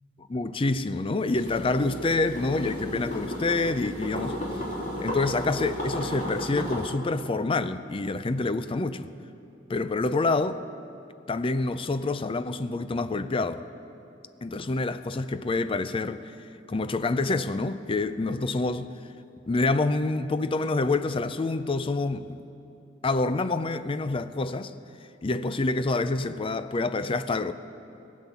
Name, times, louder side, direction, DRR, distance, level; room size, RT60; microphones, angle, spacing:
voice 1, 0.3-4.4 5.0-9.1 9.7-10.7 11.3-13.7 14.4-16.3 16.7-18.9 19.5-22.4 23.0-24.7 25.2-27.5, left 3 dB, 30° left, 0.5 m, -27 dB
sound 1, 1.3-6.8, equal, 45° left, 3.1 m, -33 dB
18.5 x 8.5 x 7.1 m
head